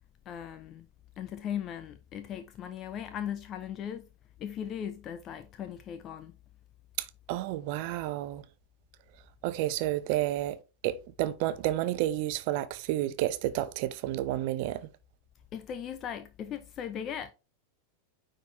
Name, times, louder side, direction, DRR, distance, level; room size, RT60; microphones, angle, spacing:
voice 1, 0.3-0.9 1.2-4.1 4.4-6.3 15.5-17.3, left 9 dB, 30° left, 0.5 m, -38 dB
voice 2, 7.0-8.4 9.4-10.6 10.8-14.9, right 14 dB, 45° right, 0.7 m, -31 dB
9.4 x 4.0 x 3.2 m
figure-of-eight pair, 90°, 0 cm